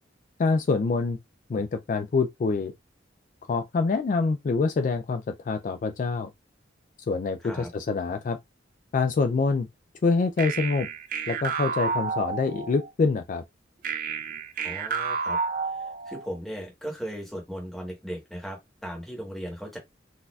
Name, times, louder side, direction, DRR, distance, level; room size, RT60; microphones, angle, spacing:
voice 1, 0.4-1.2 1.5-2.7 3.5-6.3 7.1-8.4 8.9-9.7 10.0-10.9 11.3-13.4, left 4 dB, 45° left, 0.3 m, -25 dB
sound 1, 10.4-12.9 13.8-16.4, right 5 dB, 45° right, 0.5 m, -30 dB
voice 2, 14.6-15.4 16.1-19.8, equal, ahead, 1.2 m, -37 dB
4.0 x 2.6 x 2.3 m
head